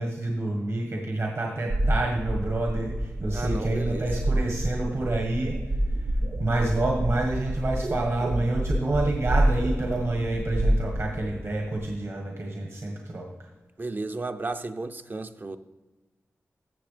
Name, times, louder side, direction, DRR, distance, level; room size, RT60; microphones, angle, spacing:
voice 1, 0.0-5.6 5.9-6.1 6.4-13.3, right 2 dB, 60° right, 1.4 m, -28 dB
sound 1, 1.7-11.9, right 1 dB, 75° right, 1.3 m, -28 dB
voice 2, 3.3-4.1 13.8-15.6, right 3 dB, 40° right, 0.5 m, -33 dB
14.0 x 7.2 x 3.3 m
wide cardioid pair, 80°, 5 cm